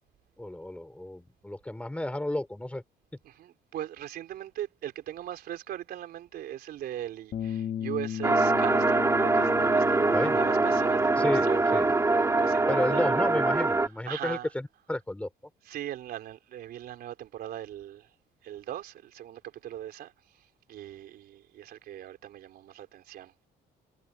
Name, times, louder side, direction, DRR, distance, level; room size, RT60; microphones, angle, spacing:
voice 1, 0.4-2.8 10.1-10.4 11.2-11.9 12.7-15.3, left 1 dB, 5° left, 4.2 m, -32 dB
voice 2, 3.2-11.8 12.1-13.1 14.1-14.5 15.6-18.1 18.4-23.3, right 12 dB, 65° right, 3.6 m, -39 dB
Bass guitar, 7.3-13.6, left 9 dB, 50° left, 1.4 m, -37 dB
sound 1, 8.2-13.9, right 3 dB, 15° right, 2.3 m, -24 dB
cardioid pair, 110°, 17 cm